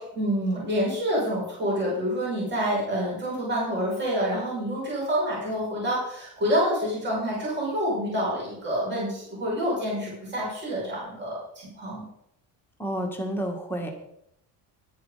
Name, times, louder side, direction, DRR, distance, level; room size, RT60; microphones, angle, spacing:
voice 1, 0.0-11.4 11.7-12.0, equal, 25° right, -5 dB, 5.9 m, -27 dB
voice 2, 12.8-13.9, right 1 dB, 5° left, 1 dB, 1.9 m, -30 dB
11.0 x 10.0 x 5.1 m, 0.75 s
cardioid pair, 165°, 41 cm